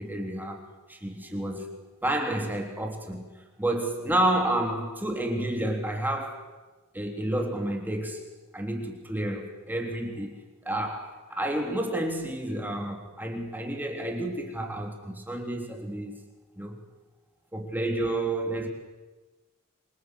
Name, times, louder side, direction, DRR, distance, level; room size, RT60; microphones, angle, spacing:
voice 1, 0.0-1.8 2.0-3.3 3.6-6.5 6.9-8.2 8.5-10.3 10.6-16.2 16.6-16.8 17.5-18.7, right 1 dB, 10° right, 3.2 m, -30 dB
27.5 x 25.5 x 8.0 m
head